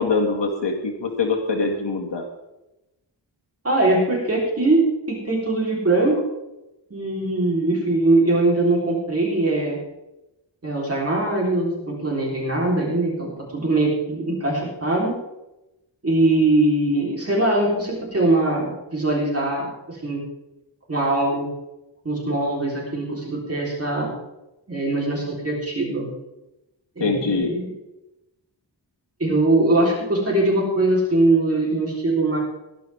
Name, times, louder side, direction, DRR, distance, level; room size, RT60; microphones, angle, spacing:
voice 1, 0.0-2.2 27.0-27.5, left 4 dB, 70° left, 1 dB, 2.1 m, -23 dB
voice 2, 3.6-6.2 6.9-9.8 10.6-15.2 16.0-20.2 20.9-21.5 22.0-24.1 24.7-26.1 27.0-27.7 29.2-32.4, right 2 dB, 30° right, -3 dB, 3.7 m, -21 dB
18.5 x 11.5 x 3.5 m, 0.95 s
wide cardioid pair, 150°, 45 cm